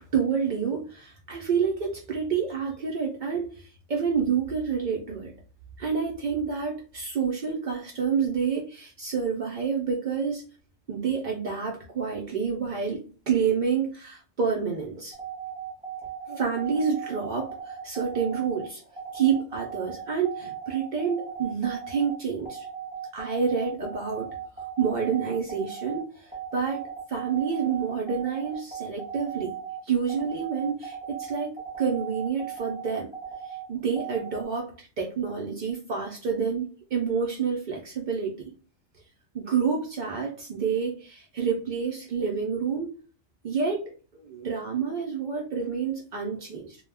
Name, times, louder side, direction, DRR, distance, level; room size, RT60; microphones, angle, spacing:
voice 1, 0.1-5.3 5.8-10.4 10.9-15.1 16.3-18.8 19.1-22.7 23.1-24.3 24.8-26.8 27.1-29.5 29.8-33.1 33.4-38.4 39.3-42.9 43.4-46.8, right 6 dB, 75° right, -1 dB, 0.4 m, -28 dB
sound 1, 15.1-34.4, right 9 dB, 10° right, 0.6 m, -38 dB
2.2 x 2.0 x 3.3 m, 0.38 s
omnidirectional pair, 1.4 m